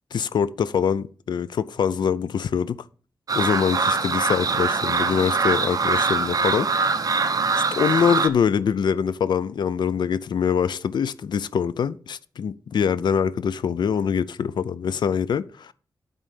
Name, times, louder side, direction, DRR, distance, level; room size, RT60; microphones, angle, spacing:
voice 1, 0.1-2.8 3.3-6.7 7.7-15.7, left 7 dB, 80° left, 0.5 m, -24 dB
sound 1, 3.3-8.3, right 4 dB, 55° right, 0.8 m, -23 dB
9.1 x 4.0 x 6.6 m
wide cardioid pair, 100°, 7 cm